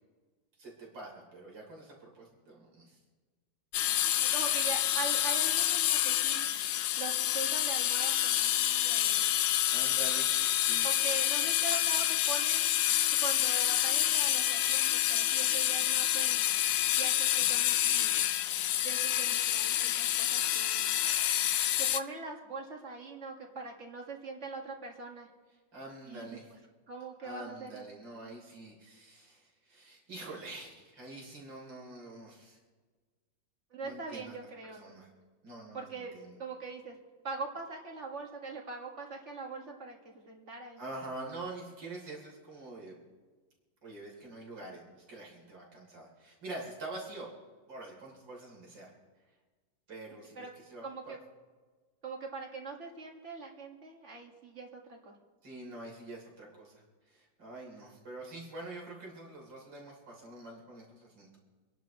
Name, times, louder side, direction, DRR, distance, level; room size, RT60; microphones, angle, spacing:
voice 1, 0.6-3.0 9.7-10.9 25.7-26.5 27.2-32.6 33.8-34.3 34.6-35.1 35.4-36.4 40.8-43.0 43.8-47.3 47.7-48.9 49.9-50.8 55.4-61.4, right 2 dB, 85° right, -2 dB, 4.1 m, -46 dB
sound 1, 3.7-22.0, left 13 dB, 85° left, 1.3 m, -28 dB
voice 2, 4.2-6.5 7.0-9.4 10.8-12.7 13.2-16.5 16.9-18.3 18.8-20.8 21.8-25.3 26.0-26.4 26.9-27.8 33.7-35.0 35.7-36.1 36.4-37.0 37.2-40.8 50.4-50.5 50.8-51.2 52.0-55.1, right 4 dB, 40° right, 1 dB, 2.1 m, -42 dB
27.0 x 11.0 x 3.1 m, 1.4 s
omnidirectional pair, 1.9 m